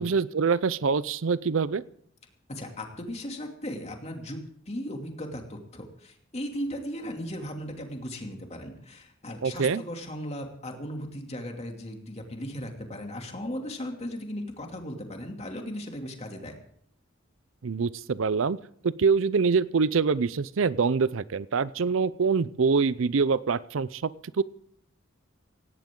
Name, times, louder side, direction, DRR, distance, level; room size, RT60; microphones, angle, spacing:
voice 1, 0.0-1.8 9.4-9.8 17.6-18.6 18.8-24.1 24.4-24.5, right 5 dB, 70° right, 18 dB, 0.5 m, -25 dB
voice 2, 2.5-4.4 4.7-16.5, equal, 30° left, 3 dB, 2.7 m, -37 dB
18.0 x 17.0 x 3.8 m, 0.65 s
head